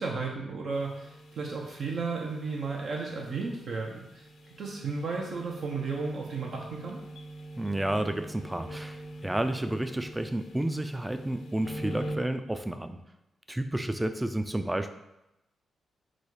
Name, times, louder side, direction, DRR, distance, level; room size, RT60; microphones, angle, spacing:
voice 1, 0.0-4.2 4.6-7.0, right 4 dB, 65° right, -1 dB, 0.7 m, -34 dB
sound 1, 0.7-12.2, right 1 dB, 80° left, 0.6 m, -43 dB
voice 2, 7.6-13.0 13.5-14.9, right 1 dB, 10° right, 9 dB, 0.3 m, -31 dB
4.1 x 2.4 x 4.7 m, 0.89 s
cardioid pair, 95°, 0 cm